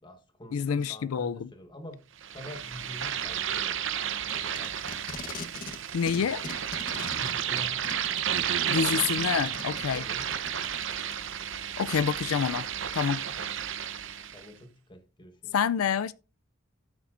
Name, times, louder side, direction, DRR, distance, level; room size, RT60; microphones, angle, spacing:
voice 1, 0.0-2.0 2.3-3.8 4.2-4.7 7.2-7.8 9.9-10.2 13.3-13.5 14.3-15.6, left 1 dB, 20° left, 1.5 m, -46 dB
voice 2, 0.5-1.5 5.9-6.4 8.7-10.1 11.8-12.7 12.9-13.2 15.5-16.1, left 7 dB, 90° left, 0.4 m, -27 dB
sound 1, 2.2-14.5, right 9 dB, 65° right, 0.8 m, -32 dB
Packing tape duct tape, 4.1-5.8 6.1-11.1 11.9-12.0, left 3 dB, 40° left, 1.1 m, -41 dB
13.5 x 7.1 x 2.6 m
head